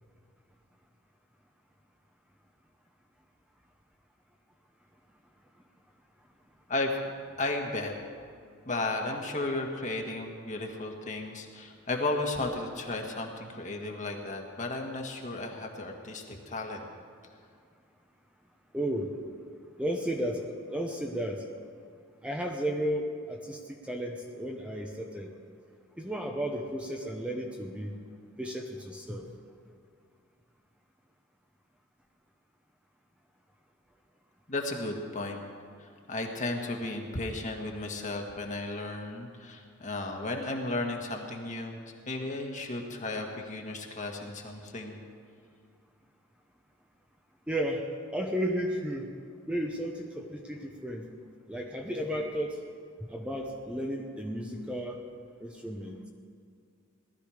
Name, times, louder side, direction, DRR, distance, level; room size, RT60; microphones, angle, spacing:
voice 1, 7.4-7.9 8.6-16.9 34.5-35.4 35.8-41.8 42.0-45.0, left 2 dB, 35° left, 2 dB, 1.7 m, -34 dB
voice 2, 18.7-19.1 19.8-21.4 22.2-25.3 26.0-28.0 28.4-29.3 47.5-49.1 49.5-51.0 51.5-52.6 53.0-55.0 55.4-56.0, equal, 5° right, 1 dB, 0.9 m, -33 dB
19.0 x 13.0 x 5.0 m, 2.2 s
head